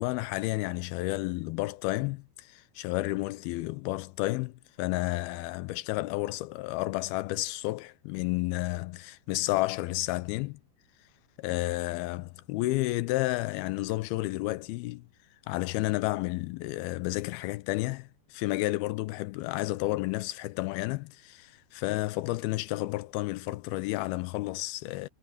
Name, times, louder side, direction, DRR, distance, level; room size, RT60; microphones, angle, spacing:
voice 1, 0.0-10.6 11.4-15.0 15.5-25.1, left 19 dB, 85° left, 2.4 m, -31 dB
omnidirectional pair, 4.4 m